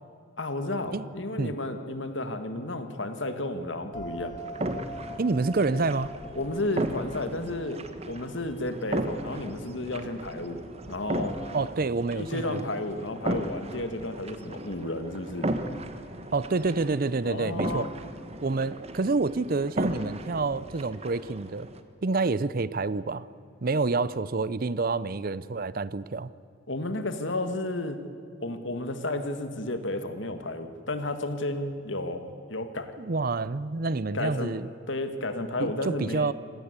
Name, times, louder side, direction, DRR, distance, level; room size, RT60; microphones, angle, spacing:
voice 1, 0.4-4.4 6.4-10.6 10.9-11.4 12.1-15.5 17.2-17.9 26.7-28.0 28.4-32.9 34.1-34.6 34.9-36.3, left 2 dB, 65° left, 8 dB, 1.9 m, -32 dB
sound 1, 3.9-11.7, equal, 20° left, 1.0 m, -44 dB
sound 2, 4.4-21.8, right 1 dB, 30° right, 1.3 m, -36 dB
voice 2, 5.2-6.1 11.5-12.7 16.3-17.9 18.4-21.7 22.0-23.3 23.6-26.3 33.0-34.7 35.6-36.3, right 3 dB, 45° right, 18 dB, 0.6 m, -28 dB
25.5 x 18.5 x 8.2 m, 2.5 s
head